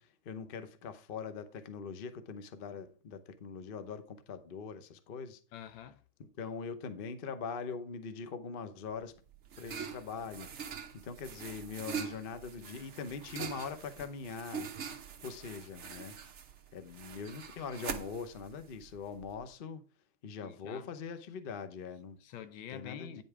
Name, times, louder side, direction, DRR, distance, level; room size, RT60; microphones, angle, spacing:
voice 1, 0.0-5.4 6.2-9.1 9.6-14.7 15.2-16.2 16.7-19.8 20.2-22.2 22.7-23.2, left 5 dB, 90° left, 0.4 m, -42 dB
voice 2, 5.5-6.0 20.4-20.9 22.2-23.2, left 9 dB, 75° left, 1.4 m, -46 dB
sound 1, 8.9-19.5, right 7 dB, 55° right, 0.8 m, -44 dB
9.8 x 5.4 x 4.8 m
omnidirectional pair, 2.3 m